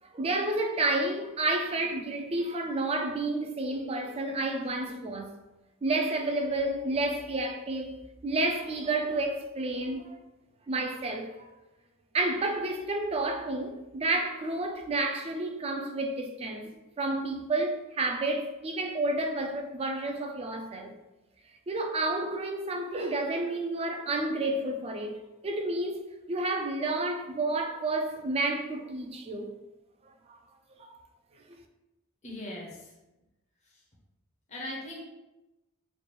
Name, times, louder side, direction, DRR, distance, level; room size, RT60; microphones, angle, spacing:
voice 1, 0.1-5.3 5.8-8.0 8.2-10.2 10.7-11.3 12.1-16.7 17.0-20.9 21.7-25.2 25.4-26.0 26.3-29.5 30.3-30.4 30.8-30.9, right 2 dB, 30° right, 0.4 m, -30 dB
voice 2, 32.2-32.9 34.5-35.1, left 1 dB, 30° left, 0.7 m, -39 dB
3.2 x 2.4 x 4.4 m
head